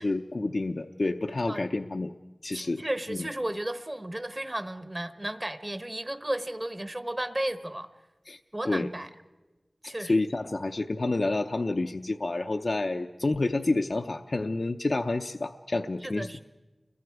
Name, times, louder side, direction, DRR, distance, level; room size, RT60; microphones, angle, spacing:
voice 1, 0.0-2.1 2.4-2.8 3.1-3.3 8.3-8.4 8.6-8.9 9.8-16.4, left 2 dB, 70° left, 5 dB, 0.6 m, -29 dB
voice 2, 2.5-7.9 8.5-9.1 9.8-10.1 16.0-16.4, right 1 dB, 30° right, 10 dB, 1.2 m, -34 dB
29.5 x 22.5 x 4.8 m, 1.1 s
wide cardioid pair, 65°, 0 cm